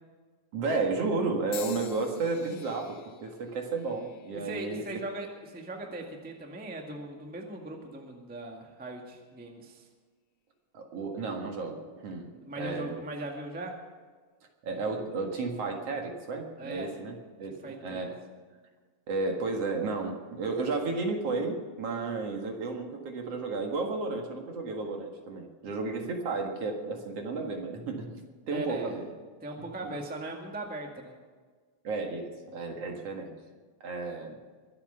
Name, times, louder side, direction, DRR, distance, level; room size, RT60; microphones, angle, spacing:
voice 1, 0.5-4.8 10.7-13.0 14.6-18.2 19.1-29.0 29.8-29.9 31.8-33.3 33.8-34.4, right 3 dB, 55° right, 2 dB, 2.6 m, -33 dB
sound 1, 1.5-5.7 6.4-6.8 7.8-7.9, left 11 dB, 85° left, 1.2 m, -48 dB
voice 2, 4.3-9.9 12.4-13.8 16.6-16.9 17.6-18.0 28.5-29.0 29.4-31.1, right 1 dB, 5° right, 1 dB, 1.2 m, -39 dB
23.0 x 8.7 x 5.7 m, 1.5 s
omnidirectional pair, 3.5 m